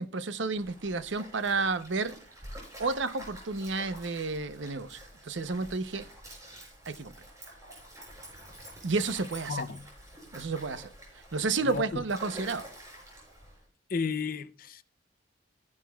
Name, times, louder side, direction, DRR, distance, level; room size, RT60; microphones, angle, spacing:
voice 1, 0.0-2.2 2.8-6.1 6.9-7.1 8.8-9.6 10.3-10.9 11.3-12.7, right 3 dB, 75° right, 0.8 m, -31 dB
Stream, 0.5-13.6, equal, 15° right, 5.7 m, -48 dB
voice 2, 9.5-9.9 11.6-12.0 13.9-14.8, left 5 dB, 50° left, 0.6 m, -33 dB
15.5 x 10.5 x 2.3 m
head